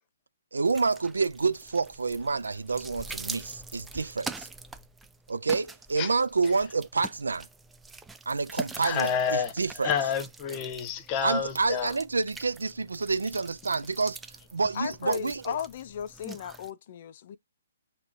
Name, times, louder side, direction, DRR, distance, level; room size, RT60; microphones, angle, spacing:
voice 1, 0.5-4.5 5.3-7.5 8.3-9.9 11.2-14.2 14.5-15.6, right 4 dB, 85° right, 0.3 m, -28 dB
sound 1, 0.6-16.7, right 3 dB, 10° right, 0.3 m, -44 dB
voice 2, 8.8-9.5 9.8-11.9, left 7 dB, 30° left, 0.8 m, -29 dB
voice 3, 14.7-17.4, left 9 dB, 50° left, 0.5 m, -36 dB
6.1 x 2.9 x 2.6 m
hypercardioid pair, 145°, 0 cm